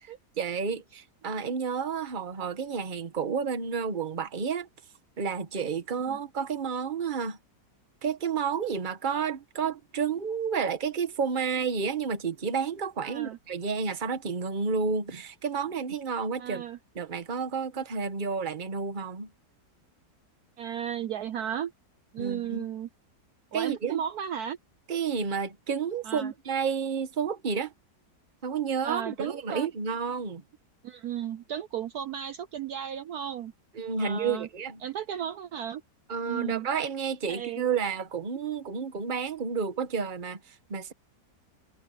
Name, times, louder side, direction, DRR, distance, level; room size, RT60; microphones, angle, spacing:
voice 1, 0.4-4.7 5.2-7.4 8.0-16.6 16.9-19.3 22.2-22.7 23.5-24.0 24.9-27.7 28.4-30.4 33.7-34.8 36.1-40.9, right 6 dB, 30° right, 1.2 m, -30 dB
voice 2, 13.0-13.4 16.4-16.8 20.6-21.7 22.1-22.9 23.5-24.6 26.0-26.3 28.8-29.7 30.8-33.5 34.0-34.5 34.8-35.8 36.3-36.7 37.3-37.6, right 9 dB, 65° right, 1.2 m, -34 dB
omnidirectional pair, 1.9 m